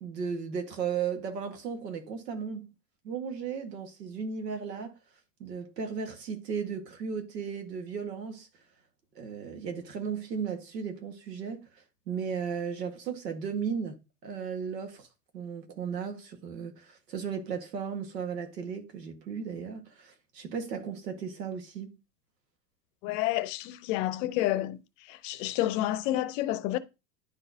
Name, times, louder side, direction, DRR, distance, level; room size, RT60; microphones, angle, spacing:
voice 1, 0.0-2.7 3.0-5.0 5.4-8.5 9.1-11.7 12.1-15.1 15.3-21.9, right 6 dB, 80° right, 1.5 m, -35 dB
voice 2, 23.0-24.8 25.1-26.8, left 15 dB, 55° left, 0.8 m, -29 dB
10.5 x 3.9 x 2.6 m
hypercardioid pair, 85°, 48 cm